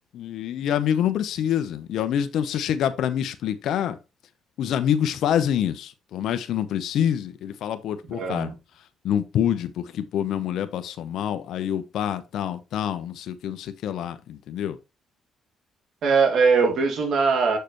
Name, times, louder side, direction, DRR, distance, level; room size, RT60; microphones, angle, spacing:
voice 1, 0.1-4.0 4.6-8.5 9.0-14.8, left 9 dB, 80° left, 0.9 m, -26 dB
voice 2, 8.1-8.5 16.0-17.6, right 5 dB, 70° right, 2.4 m, -21 dB
6.6 x 6.6 x 3.1 m
cardioid pair, 90°, 0 cm